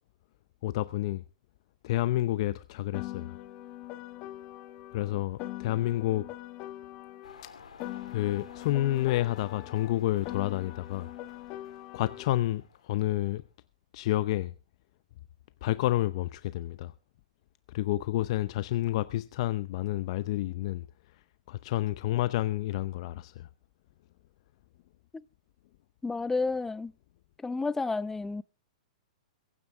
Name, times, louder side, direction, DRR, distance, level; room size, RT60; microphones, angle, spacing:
voice 1, 0.6-1.2 1.8-3.4 4.9-6.3 7.4-7.5 8.1-11.1 11.9-13.4 13.9-14.5 15.6-16.9 17.7-23.5, left 15 dB, 55° left, 0.7 m, -30 dB
Piano, 2.9-7.4 7.8-12.4, left 15 dB, 40° left, 1.3 m, -42 dB
sound 1, 7.2-13.4, left 6 dB, 85° left, 3.6 m, -52 dB
voice 2, 26.0-26.9 27.4-28.4, left 3 dB, 10° left, 0.6 m, -30 dB
23.0 x 9.7 x 3.7 m
hypercardioid pair, 125°, 4 cm